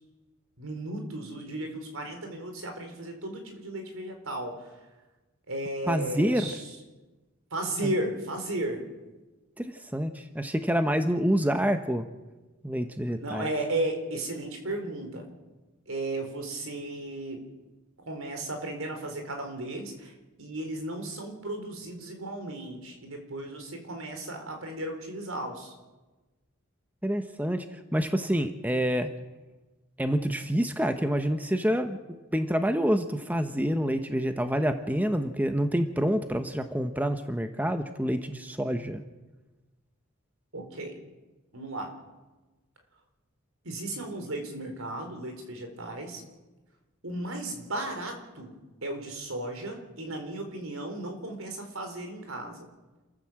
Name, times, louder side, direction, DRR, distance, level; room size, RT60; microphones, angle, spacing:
voice 1, 0.6-4.8 5.5-6.6 7.5-8.9 13.2-15.3 15.9-17.5 18.0-25.8 40.5-41.0 41.5-41.9 43.6-46.2 47.0-48.5 48.8-52.7, right 1 dB, 80° right, 5 dB, 4.4 m, -35 dB
voice 2, 5.9-6.5 9.6-12.1 12.6-13.5 27.0-29.1 30.0-32.0 32.3-39.0, equal, 10° right, 8 dB, 0.9 m, -27 dB
28.0 x 14.0 x 7.6 m, 1.2 s
head